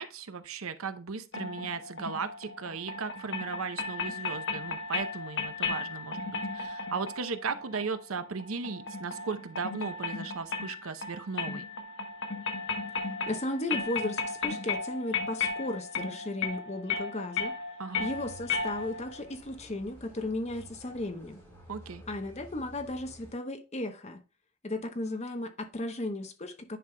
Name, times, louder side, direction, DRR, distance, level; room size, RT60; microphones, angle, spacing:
voice 1, 0.0-11.6 17.8-18.1 21.7-22.0, right 5 dB, 70° right, 0.7 m, -36 dB
sound 1, 1.3-19.2, left 4 dB, 55° left, 1.0 m, -35 dB
voice 2, 13.3-17.5 18.0-21.4 22.1-24.2 24.6-26.8, left 1 dB, 30° left, 0.9 m, -35 dB
sound 2, 18.0-23.3, right 1 dB, 15° left, 3.9 m, -52 dB
10.0 x 5.3 x 2.2 m
head